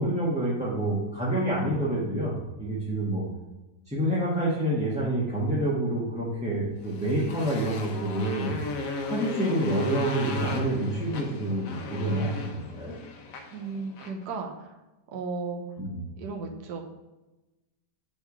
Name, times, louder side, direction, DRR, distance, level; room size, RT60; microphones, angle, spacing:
voice 1, 0.0-3.2 3.9-8.6 9.1-12.9 15.8-16.0, right 1 dB, 5° right, -8 dB, 1.2 m, -28 dB
Motorcycle, 6.8-14.2, left 4 dB, 60° left, 1.1 m, -36 dB
voice 2, 13.5-14.8 15.1-15.6 16.2-16.8, right 4 dB, 70° right, 2 dB, 1.3 m, -35 dB
7.3 x 3.5 x 4.8 m, 1.1 s
omnidirectional pair, 1.8 m